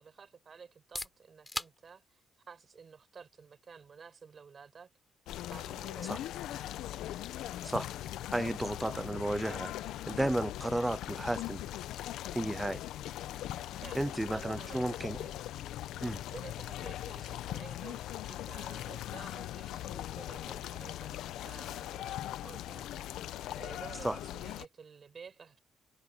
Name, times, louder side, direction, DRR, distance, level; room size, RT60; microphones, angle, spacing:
voice 1, 0.0-4.9 5.5-6.6 8.9-9.1 10.7-10.9 12.6-12.8 13.8-15.3 16.3-25.6, right 6 dB, 45° right, 5.2 m, -52 dB
sound 1, 0.7-16.3, left 1 dB, 10° left, 7.3 m, -52 dB
sound 2, 5.3-24.7, left 13 dB, 85° left, 0.8 m, -40 dB
voice 2, 8.3-9.8 10.1-11.7 12.3-12.8 13.9-15.2 16.0-16.2 24.0-24.2, right 1 dB, 10° right, 0.5 m, -33 dB
cardioid pair, 90°, 0 cm